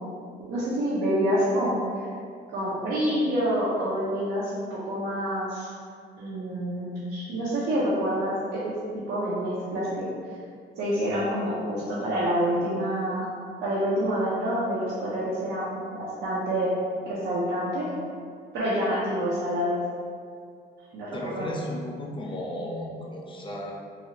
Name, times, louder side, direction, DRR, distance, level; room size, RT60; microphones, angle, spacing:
voice 1, 0.4-2.1 2.5-5.8 6.2-8.7 9.1-10.1 10.8-13.3 13.6-16.8 17.1-17.9 18.5-19.8 20.9-21.7, equal, 75° right, -8 dB, 0.6 m, -27 dB
voice 2, 21.1-23.7, left 1 dB, 25° left, -2 dB, 0.5 m, -34 dB
3.0 x 2.4 x 2.7 m, 2.3 s
cardioid pair, 90°, 20 cm